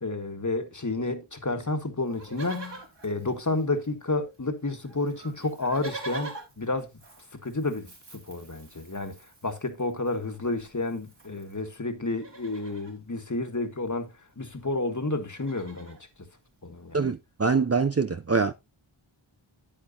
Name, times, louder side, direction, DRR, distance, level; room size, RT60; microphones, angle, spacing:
voice 1, 0.0-6.9 7.3-9.2 9.4-16.0 16.6-17.1, left 2 dB, 35° left, 1.6 m, -31 dB
Livestock farm animals working animals, 2.1-4.1 4.3-4.4 4.7-11.6 12.0-13.0 14.2-14.3 14.5-14.7 15.1-16.0 16.7-16.8, right 3 dB, 60° right, 3.5 m, -45 dB
voice 2, 16.9-18.5, right 4 dB, 30° right, 0.6 m, -24 dB
9.6 x 9.0 x 2.8 m
wide cardioid pair, 45°, 48 cm